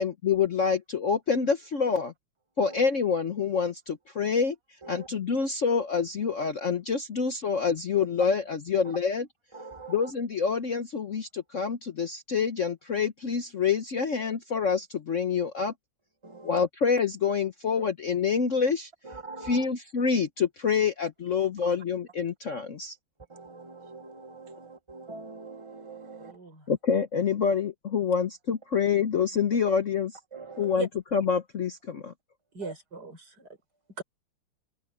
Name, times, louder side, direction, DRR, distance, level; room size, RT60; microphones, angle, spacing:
voice 1, 0.0-2.1 2.6-4.5 4.9-9.2 9.9-15.7 16.4-18.9 19.5-23.0 26.7-30.1 30.6-32.1, left 6 dB, 50° left, 1.1 m, -27 dB
voice 2, 9.5-10.1 16.2-16.6 17.8-17.9 19.0-19.7 21.6-21.7 23.3-26.4 30.3-30.8 32.6-32.7, right 3 dB, 20° right, 0.9 m, -43 dB
voice 3, 26.2-26.7 30.7-30.9 32.5-33.5 34.0-34.1, right 4 dB, 55° right, 6.8 m, -38 dB
open air
omnidirectional pair, 2.1 m